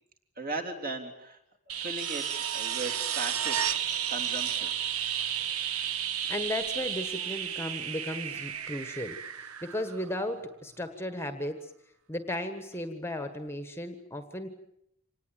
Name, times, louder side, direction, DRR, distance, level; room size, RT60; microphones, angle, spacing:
voice 1, 0.4-1.4 1.7-3.7 4.1-4.7, right 3 dB, 40° right, 3 dB, 3.5 m, -37 dB
sound 1, 1.7-10.4 12.7-12.8, right 9 dB, 90° right, 1.2 m, -32 dB
voice 2, 6.3-11.7 12.1-14.5, left 1 dB, 10° left, 8 dB, 1.3 m, -35 dB
26.0 x 19.0 x 9.1 m, 0.78 s
head